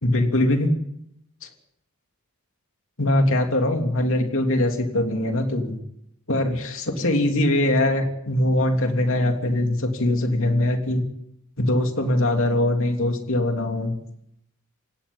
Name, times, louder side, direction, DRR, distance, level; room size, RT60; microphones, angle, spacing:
voice 1, 0.0-0.7 1.4-1.5 3.0-5.8 6.3-11.0 11.6-13.9, left 1 dB, 60° left, 4 dB, 3.2 m, -22 dB
29.0 x 17.0 x 5.6 m, 0.75 s
head